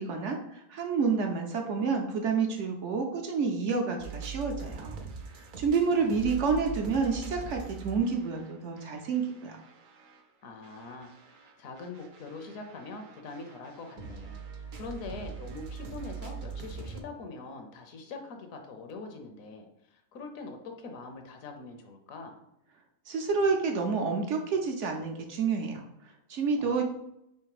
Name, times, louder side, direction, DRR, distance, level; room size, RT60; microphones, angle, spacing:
voice 1, 0.0-5.0 5.3-9.6 23.1-26.8, right 5 dB, 65° right, 3 dB, 0.8 m, -29 dB
sound 1, 4.0-10.2 10.6-17.0, right 6 dB, 90° right, 0.4 m, -43 dB
voice 2, 5.6-6.1 10.4-22.5 26.6-26.8, left 3 dB, 70° left, 4 dB, 1.1 m, -43 dB
3.4 x 3.1 x 4.7 m, 0.80 s
omnidirectional pair, 1.5 m